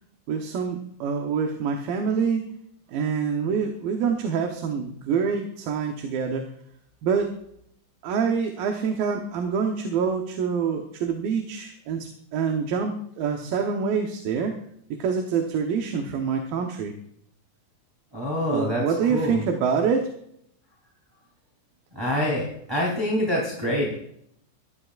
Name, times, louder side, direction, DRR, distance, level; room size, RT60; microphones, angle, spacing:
voice 1, 0.3-2.4 2.9-6.5 7.0-7.3 8.0-14.5 14.9-16.9 18.5-20.1, right 6 dB, 75° right, 3 dB, 2.7 m, -26 dB
voice 2, 18.1-18.8 19.1-19.4 21.9-23.9, left 1 dB, 5° right, -3 dB, 2.6 m, -25 dB
21.5 x 12.5 x 2.4 m, 0.71 s
omnidirectional pair, 4.2 m